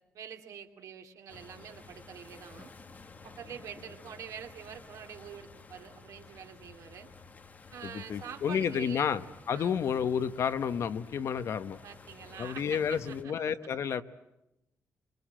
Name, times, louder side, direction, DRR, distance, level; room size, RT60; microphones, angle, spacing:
voice 1, 0.1-2.7 3.2-7.1 7.7-9.1 9.5-9.8 11.8-13.3, right 8 dB, 85° right, 4 dB, 2.7 m, -46 dB
sound 1, 1.3-13.2, left 4 dB, 30° left, 1.6 m, -52 dB
voice 2, 7.8-11.8 12.4-14.0, left 7 dB, 60° left, 11 dB, 1.1 m, -31 dB
28.0 x 24.5 x 7.5 m, 0.88 s
wide cardioid pair, 175°, 5 cm